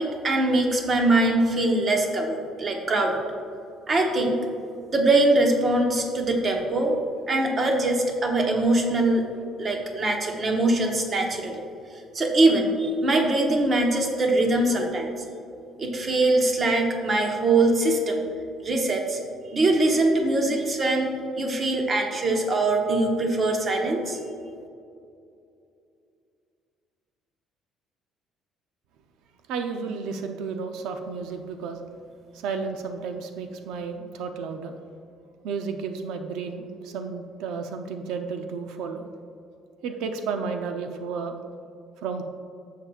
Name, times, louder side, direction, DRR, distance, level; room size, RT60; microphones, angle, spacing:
voice 1, 0.0-3.2 3.9-4.4 4.9-7.0 7.3-9.3 9.6-11.6 12.1-15.1 15.8-18.2 18.6-19.2 19.5-24.2, right 2 dB, 30° right, 2 dB, 1.0 m, -22 dB
voice 2, 29.5-31.8 32.3-34.7 35.4-39.0 39.8-41.4 42.0-42.2, right 5 dB, 85° right, 6 dB, 0.5 m, -32 dB
11.0 x 7.4 x 2.4 m, 2.5 s
cardioid pair, 165°, 0 cm